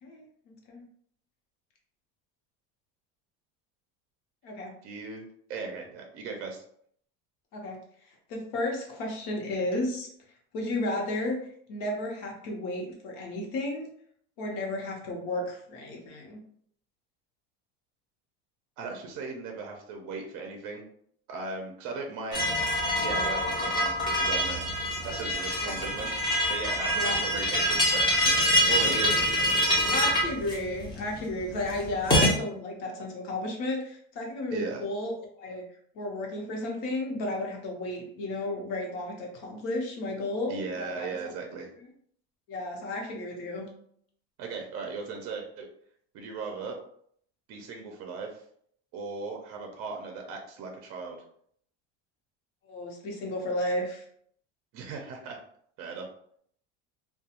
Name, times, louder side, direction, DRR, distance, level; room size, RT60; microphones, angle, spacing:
voice 1, 0.0-0.9 4.4-4.7 7.5-10.1 10.5-13.9 14.4-16.4 21.9-22.0 25.6-25.8 26.9-27.2 29.9-35.6 35.9-41.3 42.5-43.7 52.6-54.0, left 1 dB, 65° left, 0 dB, 0.9 m, -33 dB
voice 2, 4.8-6.6 18.8-20.8 21.3-22.6 23.0-24.6 25.0-26.1 26.5-29.1 29.4-29.6 34.5-34.8 40.5-41.7 44.4-45.7 46.1-46.8 47.5-48.4 48.9-51.2 54.7-55.4 55.8-56.0, right 4 dB, 45° right, 2 dB, 0.5 m, -37 dB
sound 1, 22.3-32.3, equal, 15° left, 0.6 m, -26 dB
2.3 x 2.2 x 2.8 m, 0.65 s
cardioid pair, 145°, 32 cm